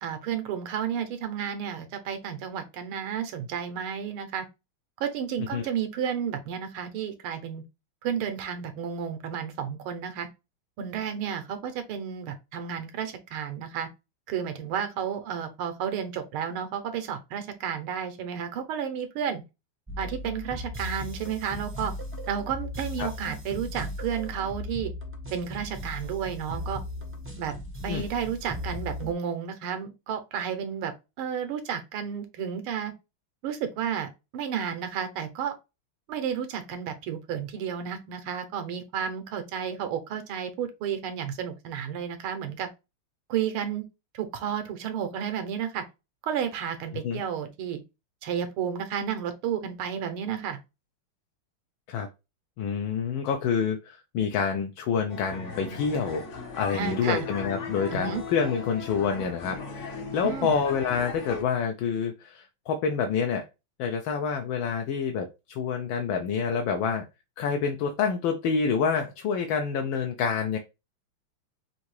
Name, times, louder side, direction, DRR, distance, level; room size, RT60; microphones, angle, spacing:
voice 1, 0.0-4.4 5.0-7.6 8.0-10.3 10.8-13.9 14.3-19.4 20.0-21.9 22.3-24.9 25.3-26.8 27.4-27.5 27.8-30.9 31.2-32.9 33.4-35.5 36.1-42.7 43.3-43.8 44.1-45.8 46.2-47.8 48.2-50.6 56.7-57.3 57.9-58.2 60.2-60.5, right 8 dB, 80° right, 1.7 m, -32 dB
sound 1, 19.9-29.1, left 1 dB, 20° right, 0.3 m, -37 dB
voice 2, 52.6-56.2 56.6-63.5 63.8-67.1 67.4-70.6, left 6 dB, 75° left, 1.4 m, -27 dB
sound 2, 55.1-61.4, left 4 dB, 50° left, 0.9 m, -37 dB
5.9 x 2.7 x 3.1 m
omnidirectional pair, 2.3 m